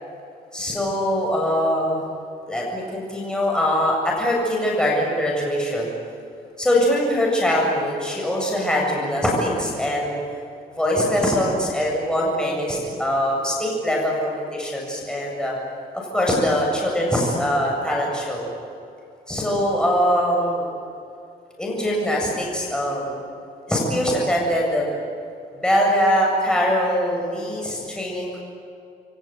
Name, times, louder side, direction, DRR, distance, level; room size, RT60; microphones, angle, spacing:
voice 1, 0.5-2.0 2.5-5.9 6.6-10.2 10.8-15.6 16.1-18.5 19.3-20.7 21.6-23.2 23.7-24.9 25.6-28.4, equal, 5° left, -3 dB, 7.6 m, -22 dB
28.0 x 23.5 x 9.2 m, 2.5 s
cardioid pair, 115°, 16 cm